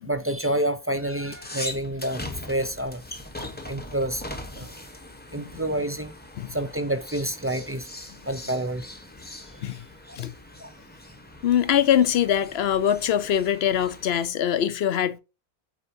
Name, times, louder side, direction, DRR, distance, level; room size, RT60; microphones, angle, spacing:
voice 1, 0.0-2.2 2.5-3.0 3.7-4.2 4.6-4.7 5.3-6.1 6.5-7.9 8.3-8.9 10.6-10.7, right 1 dB, 20° right, 0.3 m, -28 dB
sound 1, 0.9-14.3, left 1 dB, 10° left, 0.8 m, -41 dB
voice 2, 5.3-5.6 6.4-6.6 9.6-9.8 10.2-10.3 11.4-15.2, left 9 dB, 70° left, 0.9 m, -23 dB
8.5 x 4.5 x 2.7 m
omnidirectional pair, 1.1 m